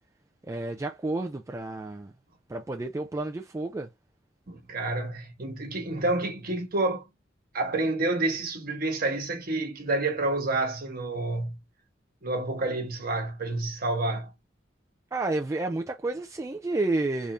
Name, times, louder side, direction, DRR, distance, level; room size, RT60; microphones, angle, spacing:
voice 1, 0.5-2.1 2.5-3.9 15.1-17.3, right 2 dB, 15° right, 0.4 m, -30 dB
voice 2, 4.5-7.0 7.5-11.6 12.2-14.3, right 2 dB, 50° right, 1.2 m, -29 dB
3.6 x 2.7 x 3.2 m
head